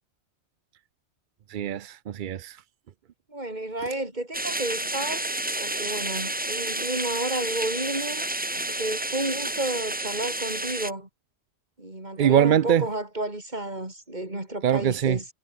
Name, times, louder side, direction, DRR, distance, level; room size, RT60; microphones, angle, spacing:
voice 1, 1.5-2.6 12.2-12.9 14.6-15.2, right 9 dB, 55° right, 0.6 m, -22 dB
voice 2, 3.3-5.2 5.6-8.3 8.5-11.1 11.8-15.3, right 1 dB, 40° right, 4.5 m, -31 dB
sound 1, 4.3-10.9, right 1 dB, 10° right, 0.7 m, -30 dB
omnidirectional pair, 1.2 m